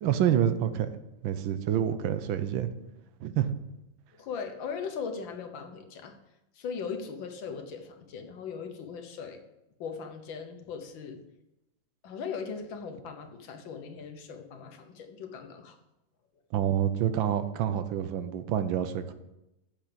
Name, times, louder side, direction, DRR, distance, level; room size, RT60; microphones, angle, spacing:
voice 1, 0.0-0.9 1.2-2.7 3.2-3.5 16.5-19.1, right 9 dB, 80° right, 11 dB, 1.5 m, -27 dB
voice 2, 4.2-6.1 6.6-9.4 9.8-11.2 12.0-15.8, left 6 dB, 80° left, 5 dB, 1.9 m, -39 dB
7.9 x 7.1 x 6.8 m, 0.91 s
omnidirectional pair, 2.1 m